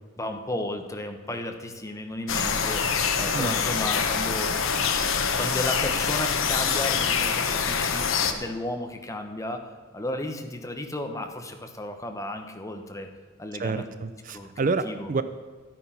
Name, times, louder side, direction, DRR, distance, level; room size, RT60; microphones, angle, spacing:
voice 1, 0.2-4.5 5.3-13.1 13.4-13.9 14.3-15.1, left 1 dB, 15° left, 5 dB, 1.0 m, -34 dB
sound 1, 2.3-8.3, left 6 dB, 70° left, 1.0 m, -25 dB
voice 2, 13.6-15.2, right 4 dB, 40° right, 12 dB, 0.4 m, -28 dB
12.5 x 9.3 x 5.8 m, 1.5 s
head